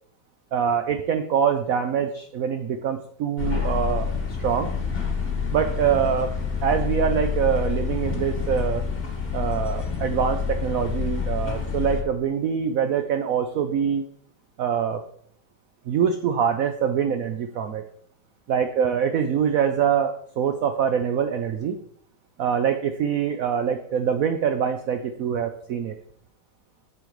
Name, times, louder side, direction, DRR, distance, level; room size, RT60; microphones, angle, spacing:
voice 1, 0.5-4.7 5.5-6.4 6.6-8.8 9.3-14.0 14.6-15.0 15.9-17.8 18.5-21.8 22.4-25.9, right 7 dB, 75° right, 7 dB, 0.7 m, -24 dB
sound 1, 3.4-12.0, left 6 dB, 35° left, 1.3 m, -27 dB
8.5 x 6.1 x 3.1 m, 0.64 s
omnidirectional pair, 2.1 m